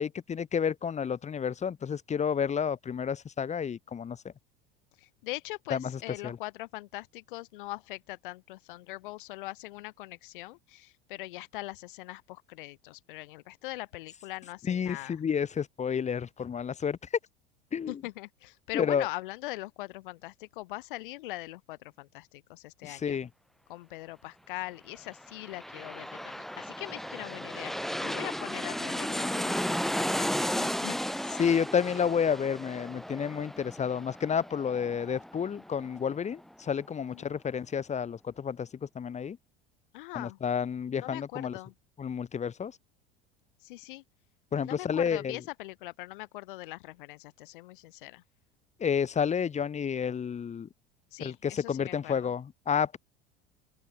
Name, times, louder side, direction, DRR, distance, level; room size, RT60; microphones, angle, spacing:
voice 1, 0.0-4.3 5.7-6.4 14.6-17.0 17.7-18.0 18.7-19.1 22.8-23.3 31.4-39.4 40.1-41.6 42.0-42.8 44.5-45.4 48.8-50.7 51.2-53.0, left 7 dB, 25° left, 2.0 m, -30 dB
voice 2, 5.0-15.2 17.9-23.2 23.7-31.0 37.1-37.3 39.9-40.4 41.0-41.7 43.6-44.0 44.6-48.2 51.1-52.3, left 19 dB, 60° left, 5.3 m, -41 dB
sound 1, 25.1-36.5 36.9-37.0, equal, ahead, 1.1 m, -34 dB
open air
figure-of-eight pair, 75°, 29 cm